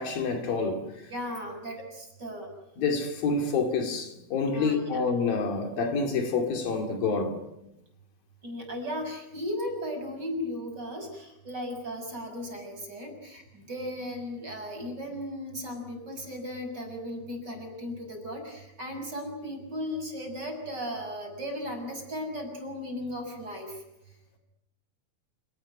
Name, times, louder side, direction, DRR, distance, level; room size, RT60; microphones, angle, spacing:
voice 1, 0.0-1.0 2.8-7.4, left 4 dB, 70° left, 4.2 m, -28 dB
voice 2, 1.1-2.5 4.5-5.0 8.4-23.8, equal, 25° right, 7.0 m, -36 dB
29.0 x 19.0 x 9.3 m
omnidirectional pair, 4.3 m